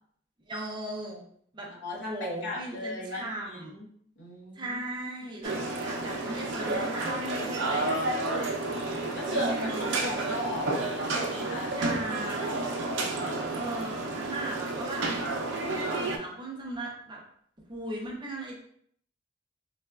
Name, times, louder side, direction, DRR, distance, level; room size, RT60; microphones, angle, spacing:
voice 1, 0.5-1.2 1.5-3.7 4.5-8.1 9.3-10.1 11.7-13.1 13.5-15.1 15.7-17.2 17.7-18.6, right 1 dB, 25° right, -2 dB, 0.6 m, -37 dB
voice 2, 1.8-3.9 4.2-4.8 5.2-5.3 9.1-11.8 13.0-13.6, left 2 dB, 70° left, -4 dB, 0.9 m, -38 dB
sound 1, 5.4-16.2, right 2 dB, 85° right, 0.5 m, -31 dB
3.9 x 2.2 x 2.3 m, 0.63 s
head